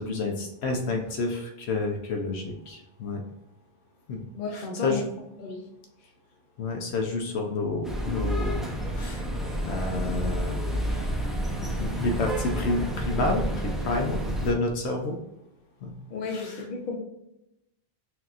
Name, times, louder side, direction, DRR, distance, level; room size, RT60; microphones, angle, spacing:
voice 1, 0.0-3.2 4.1-4.2 4.5-5.1 6.6-9.2 9.7-11.3 11.8-15.2 15.8-15.9 16.3-16.6, left 3 dB, 85° left, 2 dB, 0.9 m, -30 dB
voice 2, 4.3-5.1 5.4-5.6 16.1-17.0, left 4 dB, 55° left, 2 dB, 0.9 m, -33 dB
sound 1, 7.8-14.5, right 1 dB, ahead, 0.4 m, -29 dB
5.9 x 2.8 x 2.4 m, 0.88 s
omnidirectional pair, 1.1 m